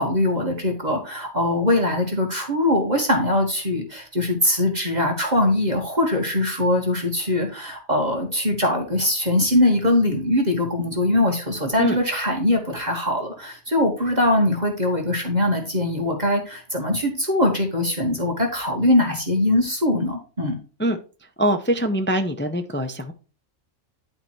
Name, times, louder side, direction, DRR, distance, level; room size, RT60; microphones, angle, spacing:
voice 1, 0.0-20.6, left 1 dB, 35° right, 1.8 m, -22 dB
voice 2, 21.4-23.1, right 1 dB, 15° left, 0.4 m, -23 dB
11.0 x 4.5 x 4.5 m
omnidirectional pair, 1.4 m